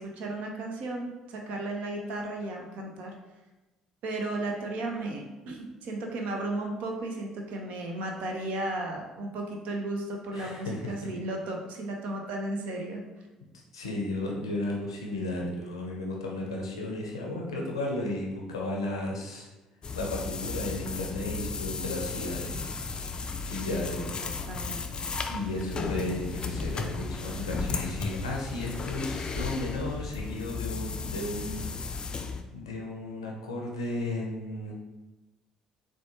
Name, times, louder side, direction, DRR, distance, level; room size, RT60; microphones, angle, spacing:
voice 1, 0.0-3.1 4.0-13.0 23.7-25.0, right 2 dB, 60° right, 1 dB, 0.5 m, -34 dB
voice 2, 10.3-10.9 13.7-19.5 19.9-22.7 23.5-24.1 25.3-31.7 32.0-32.2 32.5-34.7, left 2 dB, 85° left, -1 dB, 0.5 m, -34 dB
sound 1, 19.8-32.4, left 4 dB, 35° left, 0.3 m, -34 dB
4.1 x 2.2 x 2.9 m, 1.1 s
figure-of-eight pair, 50°, 3 cm